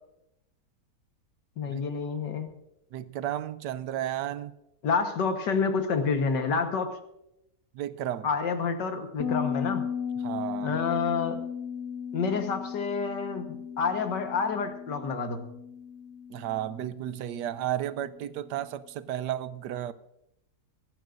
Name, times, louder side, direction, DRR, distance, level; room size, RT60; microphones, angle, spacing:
voice 1, 1.6-2.5 4.8-6.9 8.2-9.8 10.6-11.4 12.1-15.4, left 5 dB, 85° left, 1.9 m, -28 dB
voice 2, 2.9-4.5 7.7-8.3 10.2-10.8 16.3-19.9, right 12 dB, 80° right, 1.2 m, -33 dB
Bass guitar, 9.2-18.6, left 7 dB, 60° left, 2.0 m, -36 dB
24.5 x 11.5 x 2.6 m
omnidirectional pair, 1.8 m